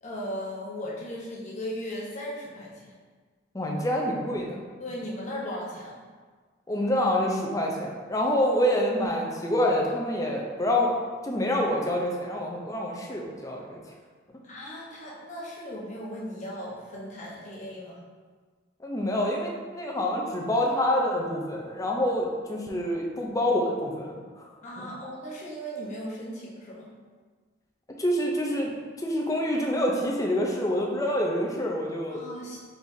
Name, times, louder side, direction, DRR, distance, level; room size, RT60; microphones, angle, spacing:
voice 1, 0.0-2.9 4.8-6.0 8.6-8.7 14.4-18.0 24.6-26.9 32.1-32.6, equal, 40° left, -5 dB, 0.9 m, -37 dB
voice 2, 3.5-4.6 6.7-11.0 11.2-13.8 18.8-24.5 24.8-24.9 28.0-28.7 29.0-32.2, left 1 dB, 20° left, -1 dB, 0.5 m, -27 dB
4.6 x 4.0 x 2.7 m, 1.5 s
head